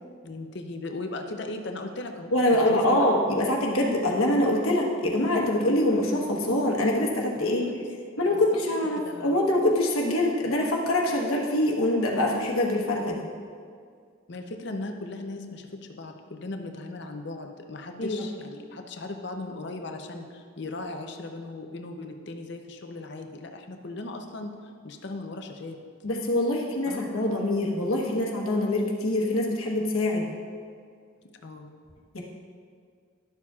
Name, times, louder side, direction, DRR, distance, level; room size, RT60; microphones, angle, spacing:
voice 1, 0.2-2.3 2.6-3.0 7.4-7.8 8.3-8.4 9.0-9.4 14.3-25.8 26.9-27.4 31.4-31.7, left 2 dB, 55° left, 5 dB, 0.6 m, -37 dB
voice 2, 2.3-7.6 8.2-13.2 18.0-18.2 26.0-30.3 32.1-32.2, left 1 dB, 85° left, -1 dB, 1.2 m, -24 dB
12.0 x 7.1 x 2.4 m, 2.1 s
head